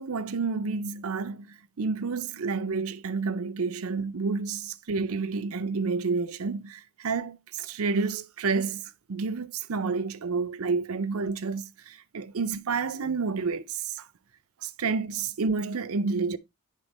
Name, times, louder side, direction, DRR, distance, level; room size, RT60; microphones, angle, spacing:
voice 1, 0.0-8.8 9.1-14.1 14.6-16.4, right 4 dB, 75° right, 0.6 m, -30 dB
9.9 x 3.7 x 4.2 m
head